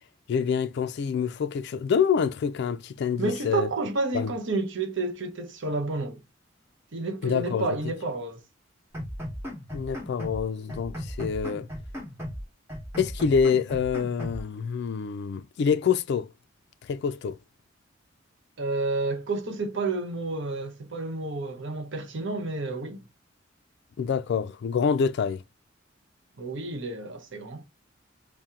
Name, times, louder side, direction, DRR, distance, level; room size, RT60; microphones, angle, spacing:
voice 1, 0.3-3.7 4.1-4.3 7.2-7.8 9.7-11.7 13.0-16.3 16.9-17.4 24.0-25.4, left 6 dB, 60° left, 0.3 m, -26 dB
voice 2, 3.2-6.2 6.9-8.4 18.6-23.0 26.4-27.6, right 3 dB, 65° right, 0.8 m, -30 dB
sound 1, 8.9-10.4 10.7-12.4 12.7-14.4, equal, 15° right, 1.3 m, -36 dB
4.3 x 2.1 x 3.6 m
head